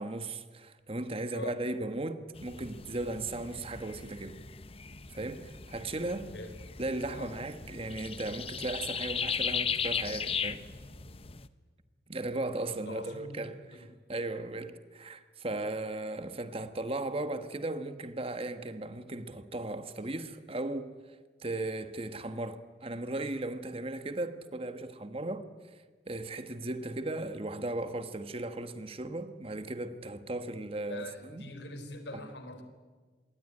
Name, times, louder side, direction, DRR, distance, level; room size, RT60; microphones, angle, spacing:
voice 1, 0.0-4.4 5.1-6.3 6.8-10.6 12.1-13.8 14.1-20.9 21.4-25.5 26.1-31.5, right 2 dB, 30° right, 1.4 m, -36 dB
sound 1, 2.3-11.5, left 6 dB, 35° left, 0.9 m, -37 dB
voice 2, 12.7-13.4 13.7-13.9 30.9-32.6, left 2 dB, 75° left, 4.2 m, -43 dB
26.5 x 22.5 x 9.9 m
head